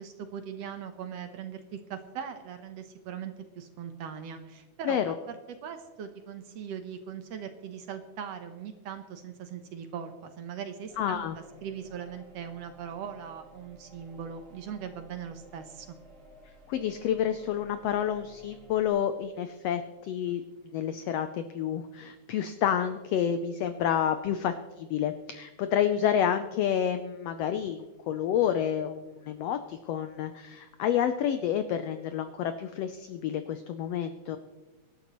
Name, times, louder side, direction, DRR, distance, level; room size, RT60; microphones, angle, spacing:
voice 1, 0.0-11.3 11.6-16.0, right 8 dB, 70° right, 8 dB, 1.8 m, -40 dB
sound 1, 10.9-18.9, equal, 50° right, 4.9 m, -55 dB
voice 2, 11.0-11.4 16.7-20.4 20.7-34.4, left 9 dB, 90° left, 9 dB, 1.4 m, -29 dB
25.5 x 11.5 x 3.0 m, 1.2 s
omnidirectional pair, 3.6 m